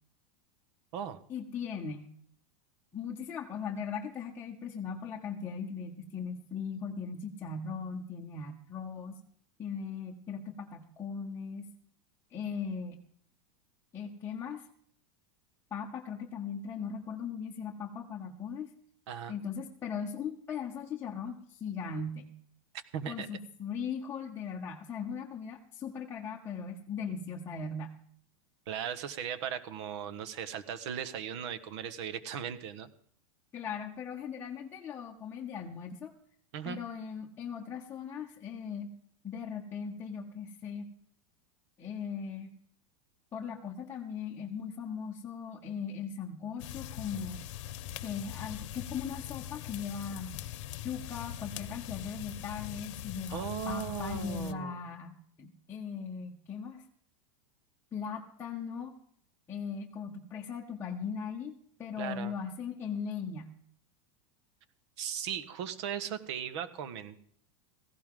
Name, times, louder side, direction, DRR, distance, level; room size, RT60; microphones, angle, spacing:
voice 1, 1.3-2.1 2.9-9.2 9.6-11.7 12.3-13.0 13.9-14.7 15.7-18.7 19.3-22.3 23.1-27.9 33.5-36.1 36.6-38.9 39.2-40.8 41.8-42.5 43.3-47.4 48.0-50.5 50.8-56.8 57.9-59.0 59.5-63.5, left 6 dB, 15° left, -2 dB, 1.1 m, -39 dB
voice 2, 22.9-23.3 28.7-32.9 36.5-36.8 53.3-54.8 62.0-62.3 65.0-67.2, right 8 dB, 55° right, 13 dB, 1.4 m, -37 dB
sound 1, 46.6-54.5, left 12 dB, 60° left, 1.0 m, -42 dB
17.5 x 15.5 x 3.8 m, 0.62 s
supercardioid pair, 170°, 18 cm